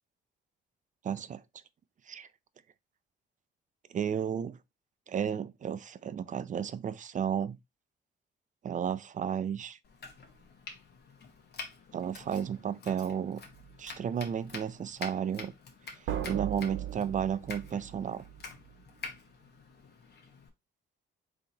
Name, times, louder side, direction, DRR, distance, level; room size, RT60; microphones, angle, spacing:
voice 1, 1.0-1.4 2.1-2.3 3.9-4.6 5.1-7.6 8.6-9.8 11.9-13.4 13.8-15.5 16.2-18.2, right 8 dB, 40° right, 0.5 m, -33 dB
Domestic sounds home sounds, 9.8-20.5, left 4 dB, 55° left, 1.2 m, -47 dB
sound 1, 13.4-13.7 16.1-18.7, right 10 dB, 75° right, 1.0 m, -38 dB
3.8 x 2.9 x 3.9 m
cardioid pair, 90°, 20 cm